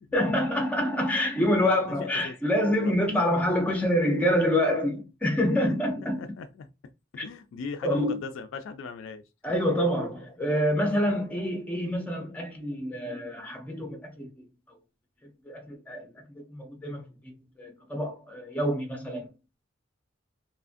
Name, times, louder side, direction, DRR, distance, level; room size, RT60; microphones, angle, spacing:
voice 1, 0.1-6.2 7.2-7.3 7.8-8.2 9.4-14.8 15.4-19.3, equal, 5° left, 0.6 m, -27 dB
voice 2, 1.6-2.3 2.8-3.1 5.6-5.7 6.2-6.7 7.1-9.2, left 4 dB, 70° left, 0.3 m, -39 dB
2.7 x 2.4 x 2.5 m
head